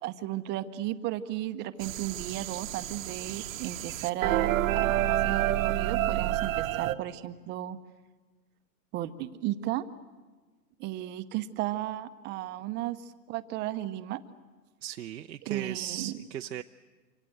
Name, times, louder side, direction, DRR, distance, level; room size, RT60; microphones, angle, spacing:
voice 1, 0.0-7.8 8.9-9.8 10.8-14.2 15.5-16.2, right 14 dB, 20° right, 11 dB, 0.9 m, -34 dB
sound 1, 1.8-7.0, right 14 dB, 50° right, 1.1 m, -29 dB
voice 2, 14.8-16.6, right 11 dB, 85° right, 6 dB, 0.8 m, -37 dB
26.5 x 25.5 x 7.9 m, 1.3 s
hypercardioid pair, 135°, 50 cm